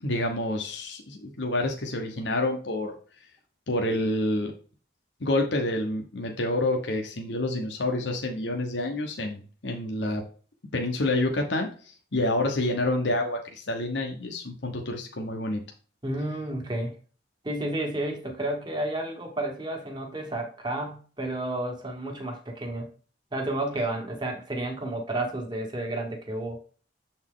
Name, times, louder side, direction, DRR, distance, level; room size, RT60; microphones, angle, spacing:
voice 1, 0.0-2.9 3.7-4.5 5.2-10.2 10.7-11.7 12.1-15.6, left 1 dB, 80° left, 1.1 m, -28 dB
voice 2, 16.0-17.0 17.4-22.9 23.3-26.6, right 1 dB, 25° right, 1.4 m, -31 dB
7.2 x 4.4 x 3.8 m
head